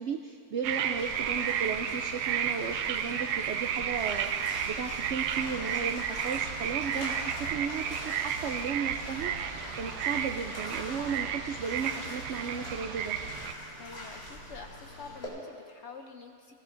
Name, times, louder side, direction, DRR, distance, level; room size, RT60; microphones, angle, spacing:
voice 1, 0.0-13.2, right 6 dB, 70° right, 4 dB, 0.6 m, -35 dB
sound 1, 0.6-13.5, right 8 dB, 85° right, 1.2 m, -33 dB
Bathtub (filling or washing), 1.0-15.3, left 1 dB, 40° left, 2.9 m, -43 dB
sound 2, 5.7-9.6, left 2 dB, 85° left, 5.1 m, -59 dB
voice 2, 13.8-16.5, left 5 dB, 65° left, 4 dB, 0.7 m, -47 dB
20.5 x 16.0 x 2.6 m, 2.3 s
omnidirectional pair, 1.7 m